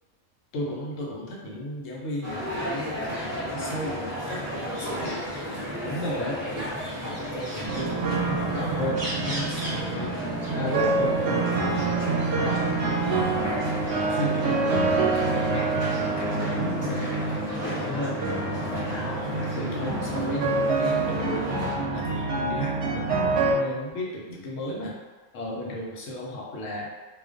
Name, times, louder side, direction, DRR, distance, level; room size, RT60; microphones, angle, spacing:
voice 1, 0.5-10.1 10.5-12.0 12.4-13.5 14.1-15.7 16.0-18.2 18.7-21.5 21.9-25.0 25.3-26.9, left 1 dB, 75° left, -3 dB, 1.0 m, -35 dB
sound 1, 2.2-21.7, equal, 20° right, 0.4 m, -33 dB
sound 2, 7.7-23.5, right 3 dB, 70° right, 0.8 m, -27 dB
2.4 x 2.2 x 2.4 m, 1.3 s
omnidirectional pair, 1.4 m